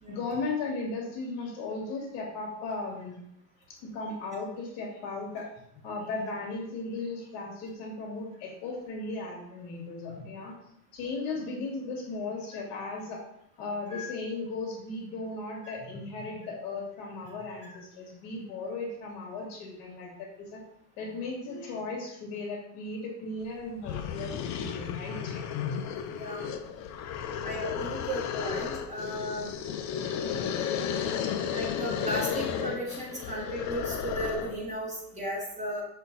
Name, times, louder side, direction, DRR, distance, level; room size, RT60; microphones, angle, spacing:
voice 1, 0.1-3.2 3.7-5.5 5.8-10.6 10.9-13.2 13.6-20.6 21.0-25.4 26.4-26.5 29.1-29.2, left 3 dB, 65° left, 0 dB, 2.2 m, -36 dB
sound 1, 23.4-23.5 23.8-34.6, left 8 dB, 40° left, 0.6 m, -33 dB
voice 2, 27.4-29.5 31.5-35.8, right 1 dB, 15° right, -6 dB, 2.6 m, -35 dB
6.4 x 4.4 x 4.0 m, 0.73 s
supercardioid pair, 140°, 46 cm